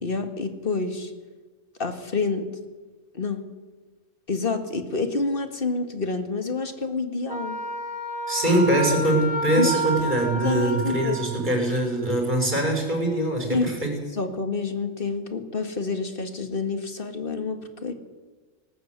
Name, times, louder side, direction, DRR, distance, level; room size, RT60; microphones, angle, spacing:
voice 1, 0.0-1.1 1.8-2.5 3.1-3.4 4.3-7.6 9.6-9.8 10.3-11.2 13.5-13.7 14.1-17.9, left 4 dB, 45° left, 7 dB, 2.1 m, -28 dB
Wind instrument woodwind instrument, 7.3-11.4, right 1 dB, 25° left, 3.0 m, -30 dB
voice 2, 8.3-13.9, right 1 dB, 35° right, 1 dB, 6.3 m, -23 dB
18.5 x 18.5 x 8.2 m, 1.3 s
omnidirectional pair, 1.4 m